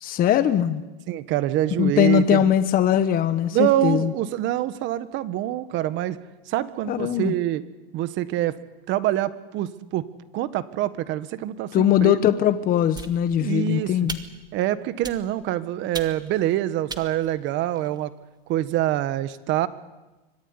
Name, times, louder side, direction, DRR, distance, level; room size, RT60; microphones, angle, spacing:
voice 1, 0.0-0.8 1.8-4.1 6.9-7.3 11.7-14.2, left 10 dB, 30° left, 11 dB, 1.3 m, -21 dB
voice 2, 1.1-2.5 3.5-6.2 6.5-7.6 7.9-8.5 8.9-10.1 10.3-12.2 13.4-14.0 14.5-18.1 18.5-19.7, right 13 dB, 40° right, 14 dB, 1.5 m, -25 dB
sound 1, 12.9-13.6 14.1-14.5 15.0-15.5 15.9-16.4 16.9-18.0, right 4 dB, 15° right, 1.8 m, -38 dB
25.0 x 18.5 x 9.8 m, 1.1 s
supercardioid pair, 140°, 31 cm